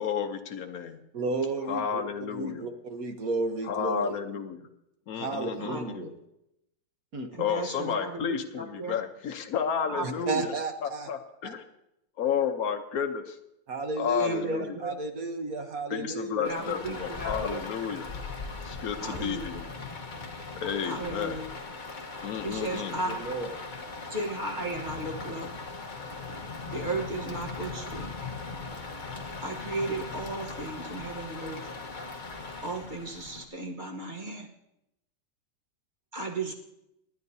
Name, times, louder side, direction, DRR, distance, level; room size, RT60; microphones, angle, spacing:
voice 1, 0.0-1.0 1.6-2.7 3.7-4.7 5.1-6.1 7.4-10.5 10.8-11.6 12.2-13.4 14.0-14.8 15.9-18.1 18.6-19.6 20.6-21.4 22.2-23.0, left 7 dB, 60° left, 6 dB, 1.2 m, -32 dB
voice 2, 1.1-2.0 2.3-4.2 5.2-6.1 7.1-7.3 10.0-11.1 13.7-16.6 23.1-23.5, right 3 dB, 55° right, 6 dB, 1.4 m, -33 dB
voice 3, 7.3-9.0 9.9-10.5 14.2-14.9 16.4-17.7 19.0-19.6 20.8-21.5 22.4-23.2 24.1-25.5 26.7-28.1 29.4-31.6 32.6-34.5 36.1-36.5, right 2 dB, 30° right, 1 dB, 1.0 m, -35 dB
Rain, 16.4-33.4, left 3 dB, 30° left, 1.0 m, -39 dB
29.0 x 9.7 x 2.7 m, 0.86 s
omnidirectional pair, 2.0 m